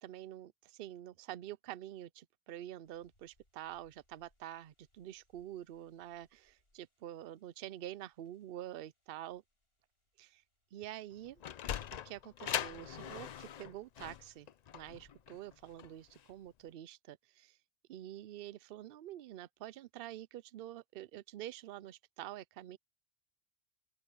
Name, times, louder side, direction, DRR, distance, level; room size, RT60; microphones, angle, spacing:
voice 1, 0.0-9.4 10.2-10.4 10.7-11.4 12.0-17.6 17.9-22.8, right 13 dB, 65° right, 0.7 m, -47 dB
sound 1, 2.8-16.5, left 1 dB, 70° left, 8.1 m, -77 dB
Sliding door, 11.1-16.3, left 9 dB, 55° left, 0.5 m, -41 dB
open air
omnidirectional pair, 1.1 m